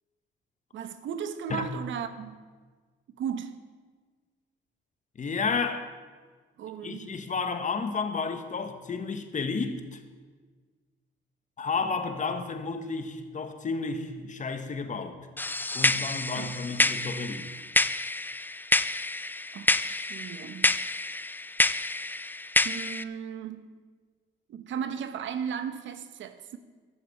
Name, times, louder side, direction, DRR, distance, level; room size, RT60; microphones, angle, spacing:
voice 1, 0.7-2.5 3.2-3.5 6.6-7.2 16.3-16.6 19.5-20.8 22.6-23.7 24.5-26.6, right 8 dB, 75° right, 11 dB, 1.0 m, -36 dB
voice 2, 5.2-5.9 6.8-10.0 11.6-15.2 15.7-17.5, left 4 dB, 40° left, 8 dB, 1.4 m, -31 dB
Crash & Snap, 15.4-23.0, left 2 dB, 10° left, 0.4 m, -28 dB
11.5 x 7.6 x 8.5 m, 1.5 s
cardioid pair, 90°, 20 cm